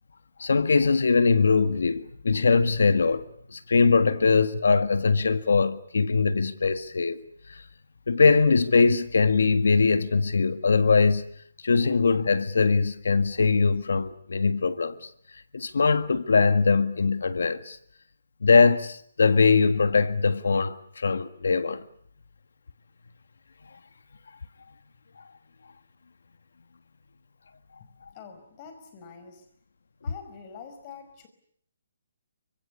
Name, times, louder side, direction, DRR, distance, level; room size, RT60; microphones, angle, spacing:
voice 1, 0.4-7.2 7.5-7.6 8.1-11.3 11.6-15.1 15.5-17.8 18.4-21.8, left 4 dB, 80° left, 1.6 m, -22 dB
voice 2, 27.8-29.5 30.0-31.3, left 6 dB, 25° left, 5.2 m, -46 dB
28.0 x 25.5 x 7.1 m
hypercardioid pair, 165°, 0 cm